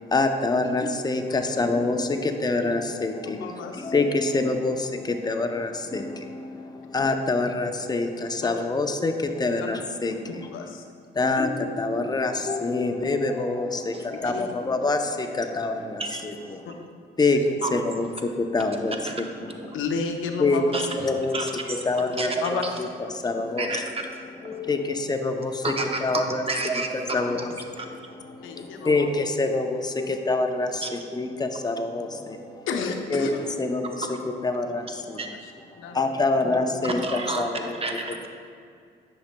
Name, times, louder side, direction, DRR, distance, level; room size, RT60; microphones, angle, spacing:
voice 1, 0.0-10.7 11.1-16.6 17.2-19.8 20.4-20.6 21.0-21.5 21.8-22.3 22.8-23.8 24.4-25.7 26.0-26.4 26.7-32.7 33.1-33.3 33.6-35.2 35.7-37.8, left 3 dB, 20° left, 5 dB, 0.6 m, -26 dB
voice 2, 3.4-3.9 8.4-8.5 10.5-10.8 14.2-14.5 16.6-16.8 17.3-17.5 19.7-20.7 22.4-22.6 24.9-25.0 27.3-27.4 28.4-29.1 32.7-33.4 35.8-36.1, left 5 dB, 85° left, 4 dB, 0.7 m, -31 dB
voice 3, 20.7-21.1 21.3-21.8 22.2-22.7 23.6-23.9 24.5-24.6 25.6-27.3 27.8-27.9 30.8-30.9 35.2-35.3 36.8-38.3, right 3 dB, 30° right, 3 dB, 0.8 m, -30 dB
10.0 x 6.3 x 2.2 m, 2.3 s
cardioid pair, 90°, 20 cm